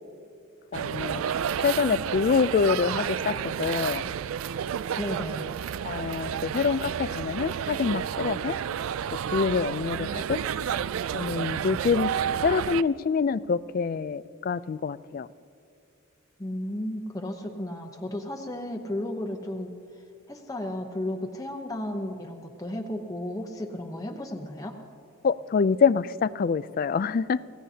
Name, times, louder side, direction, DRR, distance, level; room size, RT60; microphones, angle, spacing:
voice 1, 0.7-1.2 1.6-4.0 5.8-8.6 9.3-10.4 11.1-12.1 12.4-15.3 25.2-27.4, left 5 dB, 45° left, 17 dB, 0.3 m, -26 dB
sound 1, 0.7-12.8, right 8 dB, 85° right, 0.4 m, -31 dB
voice 2, 5.0-5.5 16.4-19.7 20.3-24.8, left 1 dB, 15° left, 1 dB, 0.8 m, -34 dB
27.0 x 16.5 x 2.8 m, 2.4 s
head